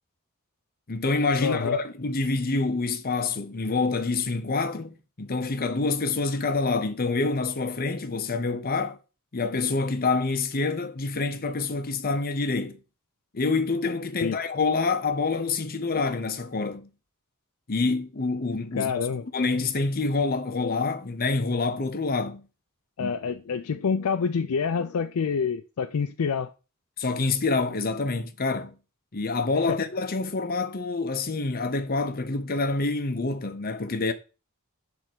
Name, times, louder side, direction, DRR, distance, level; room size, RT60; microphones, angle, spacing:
voice 1, 0.9-9.0 9.3-12.8 13.3-16.9 17.7-18.9 19.3-22.4 23.0-23.1 27.0-28.7 29.1-34.1, left 3 dB, 45° left, 0.8 m, -27 dB
voice 2, 1.4-1.8 14.2-14.3 18.7-19.2 23.0-26.5 29.7-29.8, left 6 dB, 70° left, 0.4 m, -27 dB
7.4 x 3.5 x 6.2 m
head